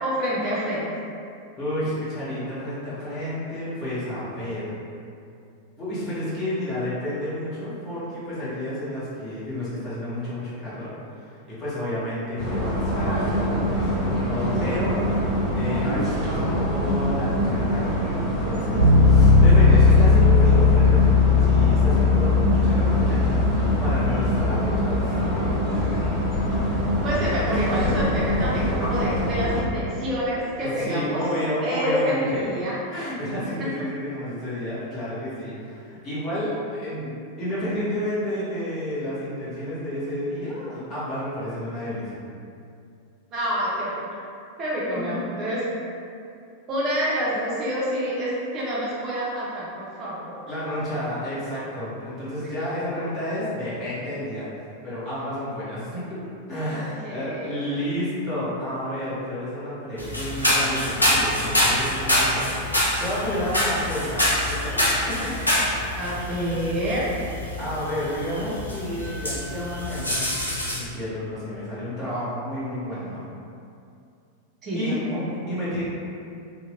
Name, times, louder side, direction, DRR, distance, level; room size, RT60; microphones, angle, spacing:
voice 1, 0.0-0.9 27.0-31.2 31.6-32.8 43.3-44.0 44.6-45.6 46.7-50.4 52.4-52.5 56.7-57.6 65.2-65.4 65.9-67.1 74.6-75.2, equal, 30° right, -7 dB, 0.5 m, -27 dB
voice 2, 1.6-4.7 5.8-10.9 11.2-15.0 15.5-25.6 30.6-32.4 32.9-42.2 45.0-45.1 50.5-54.5 54.8-56.0 56.5-65.3 66.4-66.7 67.6-70.3 70.7-73.2 74.7-75.8, left 1 dB, 30° left, -11 dB, 1.0 m, -31 dB
sound 1, 12.4-29.6, equal, 10° right, 1.2 m, -25 dB
Bass guitar, 18.8-28.5, left 4 dB, 90° right, 0.4 m, -19 dB
sound 2, 60.0-70.8, left 1 dB, 80° left, 0.5 m, -25 dB
2.8 x 2.0 x 2.5 m, 2.5 s
figure-of-eight pair, 90°, 0 cm